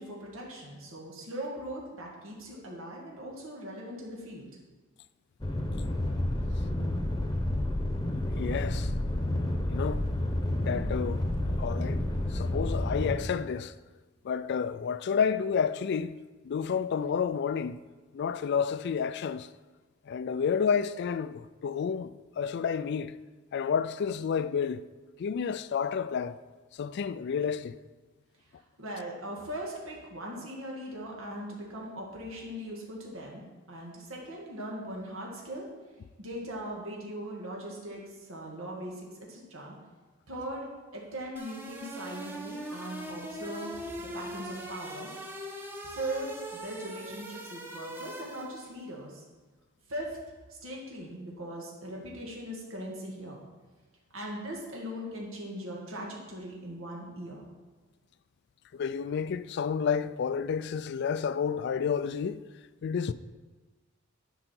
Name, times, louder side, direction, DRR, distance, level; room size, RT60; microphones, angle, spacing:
voice 1, 0.0-4.5 28.8-35.7 36.2-39.8 40.3-40.7 40.9-45.1 45.8-49.2 49.9-50.2 50.5-53.4 54.1-57.5, right 1 dB, 85° right, 1.9 m, -40 dB
sound 1, 5.4-13.2, left 1 dB, 20° left, 0.9 m, -30 dB
voice 2, 8.4-8.9 9.7-10.1 10.7-11.2 11.6-12.0 12.3-13.7 14.2-16.2 16.4-17.8 18.1-19.5 20.1-23.2 23.5-24.8 25.2-26.4 26.7-27.8 58.7-62.5 62.8-63.1, left 6 dB, 55° left, 0.3 m, -30 dB
sound 2, 41.4-48.8, equal, 10° right, 0.9 m, -41 dB
10.0 x 5.6 x 4.4 m
head